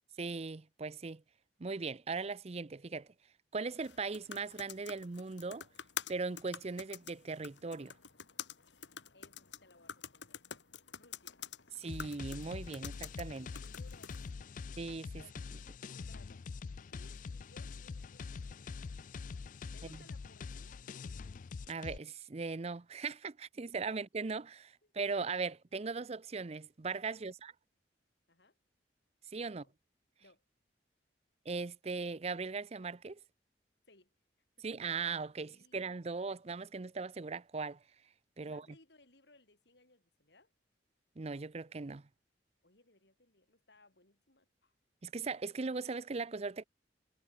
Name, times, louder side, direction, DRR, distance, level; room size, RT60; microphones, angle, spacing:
voice 1, 0.2-1.2 1.6-3.1 3.5-5.7 6.1-7.9 11.8-13.5 14.8-15.2 19.8-20.0 21.7-27.5 29.3-29.6 31.5-33.2 34.6-37.8 38.4-38.6 41.2-42.0 45.0-46.6, right 4 dB, 35° right, 0.6 m, -39 dB
sound 1, 3.7-14.3, left 8 dB, 90° left, 2.5 m, -48 dB
voice 2, 9.1-10.4 11.0-11.4 11.7-11.8 12.7-14.7 15.2-15.4 16.0-16.4 16.9-18.8 19.6-20.8 23.5-23.6 24.8-25.2 25.5-25.6 27.1-27.3 28.3-28.6 29.4-29.7 30.2-30.4 33.9-34.2 34.6-34.8 35.4-35.8 36.3-36.4 38.4-40.5 42.6-44.7, left 2 dB, 70° left, 6.1 m, -65 dB
sound 2, 11.9-22.0, left 4 dB, 45° left, 0.4 m, -45 dB
head